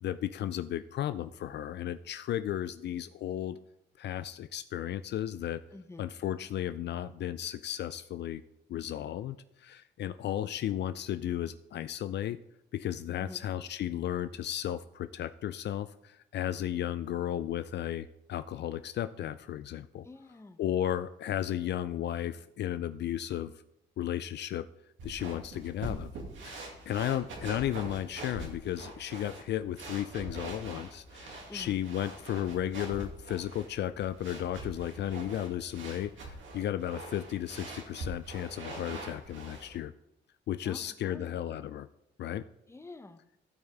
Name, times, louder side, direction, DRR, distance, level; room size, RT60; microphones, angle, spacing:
voice 1, 0.0-3.6 4.0-5.6 6.0-8.4 8.7-12.4 12.7-20.1 20.6-23.5 24.0-24.7 25.0-26.1 26.4-39.9 40.5-41.9 42.2-42.4, left 11 dB, 60° left, 12 dB, 0.4 m, -34 dB
voice 2, 5.7-6.1 13.2-13.4 20.0-20.6 25.2-25.7 31.5-31.8 40.6-41.3 42.7-43.2, left 2 dB, 15° left, 9 dB, 0.8 m, -48 dB
sound 1, 25.0-39.8, right 2 dB, 75° right, 2.4 m, -44 dB
16.0 x 5.3 x 3.5 m, 0.82 s
cardioid pair, 90°, 20 cm